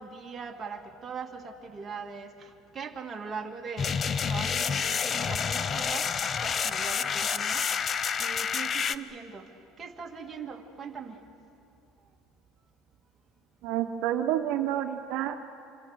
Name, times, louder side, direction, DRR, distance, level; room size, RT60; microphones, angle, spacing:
voice 1, 0.0-2.3 2.7-3.9 4.2-6.1 6.4-7.6 8.2-9.4 9.8-11.2, right 5 dB, 20° right, 0 dB, 2.1 m, -40 dB
sound 1, 3.8-9.0, left 6 dB, 25° left, 0.6 m, -29 dB
voice 2, 13.6-15.4, right 11 dB, 60° right, 6 dB, 1.1 m, -29 dB
26.5 x 26.5 x 6.5 m, 2.6 s
cardioid pair, 155°, 0 cm